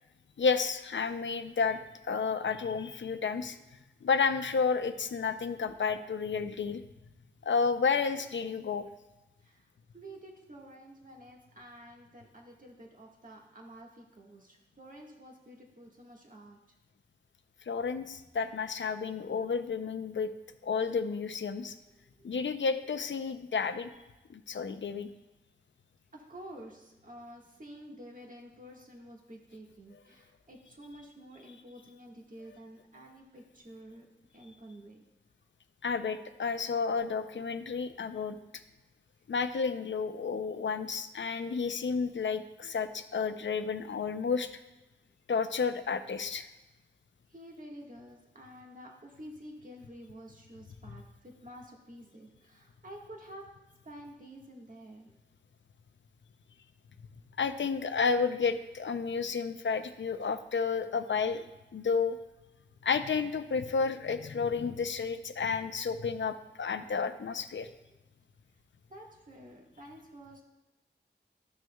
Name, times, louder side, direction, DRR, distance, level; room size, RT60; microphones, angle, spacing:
voice 1, 0.4-1.8 2.1-3.6 4.0-6.8 7.4-8.9 17.7-20.3 20.6-21.7 22.2-23.9 24.3-25.1 35.8-38.4 39.3-44.5 45.3-46.5 57.4-61.5 61.7-62.2 62.8-67.7, left 5 dB, 85° left, 10 dB, 0.5 m, -31 dB
voice 2, 9.9-16.6 22.1-22.4 26.1-34.0 34.3-35.0 47.3-53.5 53.8-55.2 68.9-70.4, right 1 dB, 45° right, -1 dB, 1.5 m, -50 dB
13.0 x 6.3 x 2.3 m, 1.0 s
wide cardioid pair, 60°, 19 cm